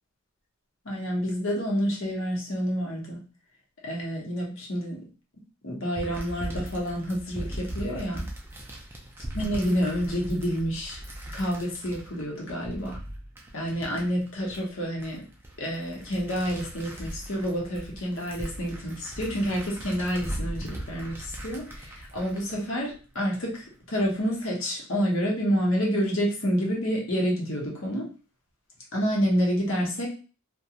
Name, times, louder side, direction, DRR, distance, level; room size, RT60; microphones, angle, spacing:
voice 1, 0.8-3.2 3.8-5.0 5.6-8.2 9.3-11.0 11.3-12.9 13.5-15.2 15.6-28.1 28.9-30.1, equal, 60° left, -2 dB, 0.8 m, -28 dB
sound 1, 5.9-23.6 24.0-24.5, right 1 dB, 10° right, 0.3 m, -39 dB
2.4 x 2.2 x 2.8 m, 0.36 s
head